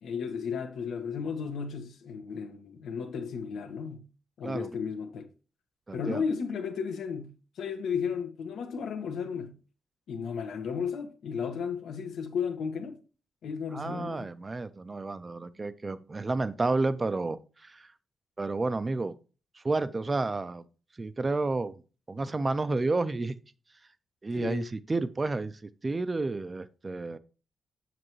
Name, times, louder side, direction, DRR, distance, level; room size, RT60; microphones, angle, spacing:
voice 1, 0.0-4.0 4.4-5.3 5.9-7.3 7.6-9.5 10.1-13.0 13.4-14.3 24.4-24.7, left 6 dB, 90° left, 1.4 m, -34 dB
voice 2, 5.9-6.2 13.7-17.9 18.4-19.1 19.6-20.6 21.0-21.7 22.1-23.3 24.2-27.2, right 3 dB, 20° right, 0.4 m, -31 dB
7.7 x 7.6 x 3.1 m
wide cardioid pair, 175°, 0 cm